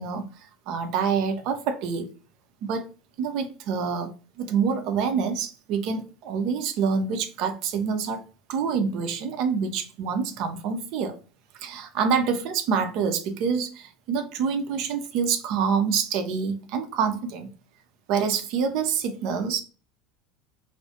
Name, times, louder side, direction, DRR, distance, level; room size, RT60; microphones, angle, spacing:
voice 1, 0.0-2.1 2.6-2.9 3.2-4.1 4.4-8.2 8.5-11.2 11.6-17.5 18.1-19.6, right 6 dB, 50° right, 0.4 m, -26 dB
2.3 x 2.0 x 2.7 m
figure-of-eight pair, 70°, 0 cm